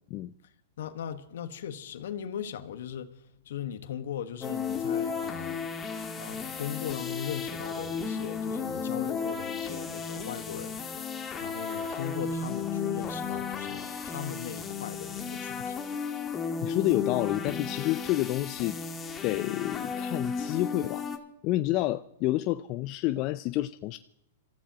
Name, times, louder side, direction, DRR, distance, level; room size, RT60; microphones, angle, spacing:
voice 1, 0.8-3.1 3.4-5.7 6.1-10.8 11.4-15.8, left 9 dB, 75° left, 1.4 m, -38 dB
sound 1, 4.4-21.2, left 5 dB, 20° left, 1.6 m, -34 dB
voice 2, 16.6-18.8 19.2-21.1 21.4-24.0, left 16 dB, 45° left, 0.5 m, -29 dB
27.0 x 14.5 x 3.0 m
hypercardioid pair, 120°, 0 cm